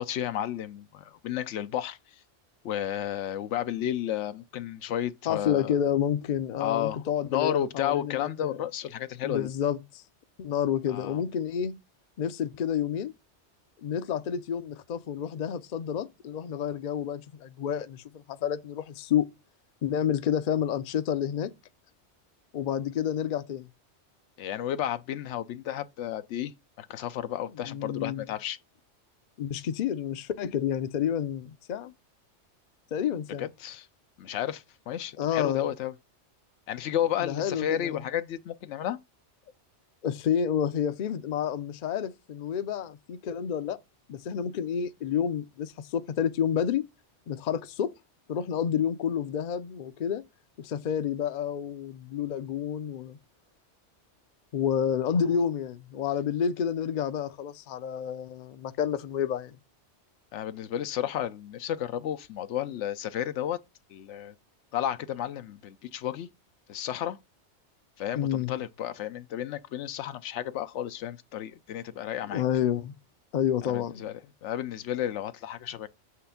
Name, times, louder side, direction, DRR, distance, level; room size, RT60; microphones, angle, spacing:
voice 1, 0.0-2.2 2.6-5.8 6.6-9.5 10.9-11.2 24.4-28.6 33.4-33.9 34.2-35.9 36.7-39.0 60.3-63.6 63.9-64.3 64.7-66.3 66.7-67.2 68.0-72.4 73.6-75.9, left 11 dB, 80° left, 0.9 m, -32 dB
voice 2, 5.3-8.6 9.2-10.0 10.4-11.7 12.2-13.1 13.8-19.3 19.8-21.5 22.5-23.7 27.6-28.2 29.4-31.9 32.9-33.5 35.2-35.6 37.2-38.0 40.0-43.8 44.1-46.9 47.3-47.9 48.3-50.2 50.6-53.2 54.5-59.6 68.1-68.5 72.3-72.9 73.3-74.1, left 9 dB, 50° left, 0.6 m, -29 dB
7.8 x 3.3 x 5.7 m
omnidirectional pair, 1.2 m